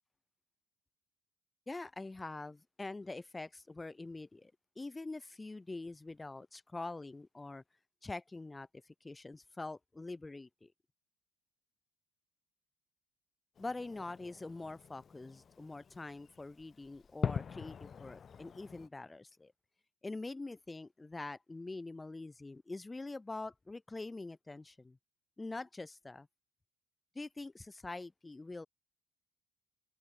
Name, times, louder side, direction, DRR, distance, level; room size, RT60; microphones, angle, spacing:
voice 1, 1.7-7.6 8.0-8.7 9.0-10.7 13.6-19.5 20.0-25.0 25.4-26.3 27.1-28.7, left 2 dB, 15° left, 0.9 m, -44 dB
Fireworks, 13.6-18.9, left 6 dB, 35° left, 1.9 m, -43 dB
open air
cardioid pair, 110°, 0 cm